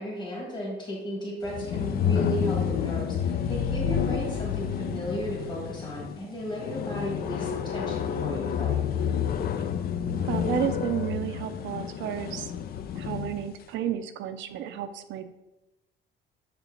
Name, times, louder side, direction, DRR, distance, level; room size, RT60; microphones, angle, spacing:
voice 1, 0.0-8.8, equal, 25° left, -4 dB, 2.0 m, -34 dB
sound 1, 1.4-13.5, left 8 dB, 55° left, 0.4 m, -29 dB
voice 2, 10.2-12.5 12.9-15.2, right 10 dB, 80° right, 8 dB, 0.5 m, -32 dB
6.6 x 4.4 x 3.9 m, 0.99 s
cardioid pair, 140°, 19 cm